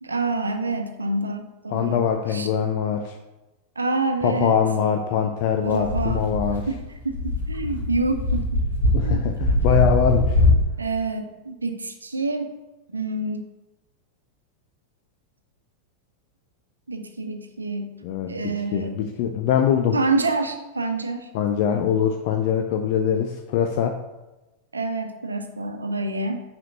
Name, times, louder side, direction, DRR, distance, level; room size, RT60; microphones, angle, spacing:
voice 1, 0.0-2.0 2.3-2.5 3.8-4.6 5.6-6.2 6.7-8.6 9.0-9.4 10.8-12.5 12.9-13.5 16.9-17.9 18.3-19.0 19.9-21.3 24.7-26.4, right 3 dB, 75° right, 6 dB, 0.8 m, -27 dB
voice 2, 1.7-3.2 4.2-6.6 8.9-10.4 18.0-19.9 21.3-24.0, left 8 dB, 45° left, 4 dB, 0.6 m, -23 dB
sound 1, 5.7-10.6, left 1 dB, 80° left, 2.4 m, -22 dB
5.8 x 4.6 x 6.5 m, 1.0 s
figure-of-eight pair, 90°, 0 cm